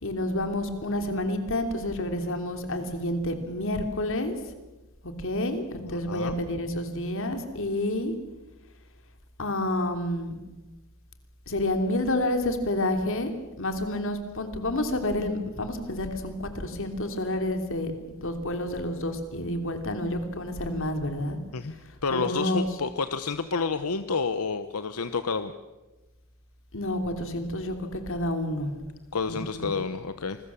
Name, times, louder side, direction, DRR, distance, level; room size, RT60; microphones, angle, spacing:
voice 1, 0.0-4.3 5.2-8.1 9.4-10.3 11.5-13.3 13.6-17.9 18.2-21.4 22.1-22.7 26.7-28.7 29.3-29.7, left 1 dB, 65° left, 7 dB, 3.1 m, -29 dB
voice 2, 5.7-6.4 21.5-21.7 22.0-25.5 29.1-30.4, left 4 dB, 90° left, 11 dB, 1.0 m, -29 dB
27.5 x 21.0 x 7.2 m, 1.1 s
head